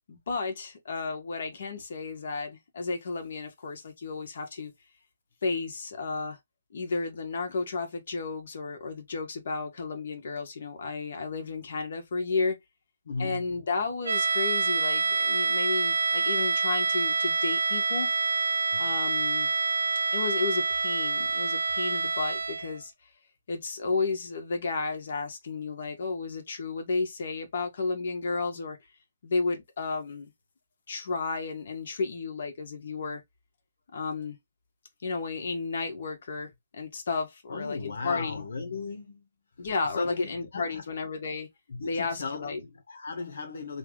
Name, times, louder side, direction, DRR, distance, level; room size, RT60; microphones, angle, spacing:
voice 1, 0.1-4.7 5.4-6.4 6.7-12.6 13.2-18.1 18.8-19.5 20.1-22.9 23.5-28.8 29.2-30.3 30.9-33.2 33.9-34.4 35.0-38.4 39.6-41.5 41.8-42.6, left 4 dB, 65° left, 1.6 m, -32 dB
voice 2, 13.1-13.5 18.7-18.9 37.5-39.3 39.6-40.8 41.7-43.8, left 4 dB, 80° left, 0.8 m, -37 dB
sound 1, 14.1-22.8, right 4 dB, 90° right, 0.6 m, -27 dB
3.9 x 3.3 x 3.1 m
hypercardioid pair, 165°, 0 cm